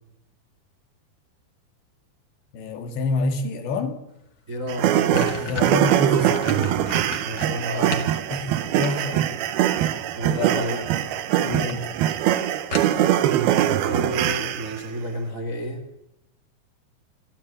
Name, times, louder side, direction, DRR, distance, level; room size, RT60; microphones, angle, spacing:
voice 1, 2.5-4.0 5.4-6.5 8.3-9.4 9.7-9.9 10.3-10.9 11.4-12.0, left 3 dB, 85° left, 7 dB, 4.4 m, -28 dB
sound 1, 4.3-4.4 4.7-8.1 8.5-9.4 10.5-10.9 11.3-11.4 11.7-11.8 12.1-12.2 12.7-13.3, left 3 dB, 40° left, 1.7 m, -33 dB
voice 2, 4.5-5.4 7.2-8.1 10.1-10.8 12.9-15.8, equal, 40° right, 5 dB, 1.1 m, -32 dB
sound 2, 4.7-14.9, right 11 dB, 75° right, 2.7 m, -22 dB
27.0 x 12.5 x 8.7 m, 0.87 s
omnidirectional pair, 4.9 m